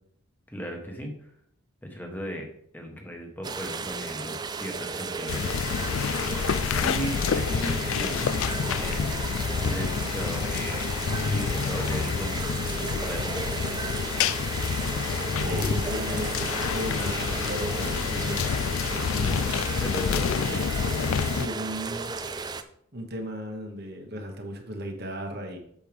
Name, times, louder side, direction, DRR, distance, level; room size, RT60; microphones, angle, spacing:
voice 1, 0.5-1.1 1.8-2.5 2.7-5.5 6.8-8.3 8.6-9.1 9.6-10.9 11.2-13.4 19.1-19.5 19.8-20.8, equal, 10° left, 2 dB, 1.2 m, -36 dB
sound 1, 3.4-22.6, right 4 dB, 20° right, 0.3 m, -34 dB
sound 2, 5.3-21.5, left 6 dB, 70° left, 0.4 m, -28 dB
voice 2, 15.4-18.5 18.9-19.5 21.3-22.2 22.9-25.6, equal, 45° right, 3 dB, 1.2 m, -35 dB
8.3 x 6.6 x 3.5 m, 0.68 s
head